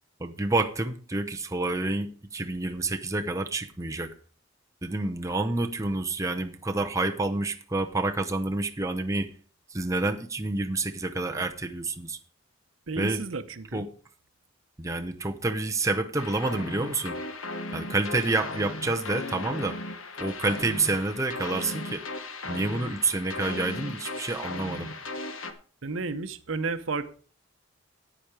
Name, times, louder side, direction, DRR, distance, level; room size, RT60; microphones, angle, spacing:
voice 1, 0.2-4.1 4.8-9.3 9.7-12.2 13.0-13.2 13.7-13.9 14.8-17.2 17.7-19.8 20.2-22.0 22.5-24.9, right 2 dB, 15° right, 4 dB, 0.8 m, -28 dB
voice 2, 12.9-13.9 25.8-27.1, right 3 dB, 75° right, 11 dB, 0.9 m, -32 dB
sound 1, 16.2-25.5, left 2 dB, 85° left, 1.3 m, -36 dB
10.0 x 9.0 x 4.9 m, 0.40 s
head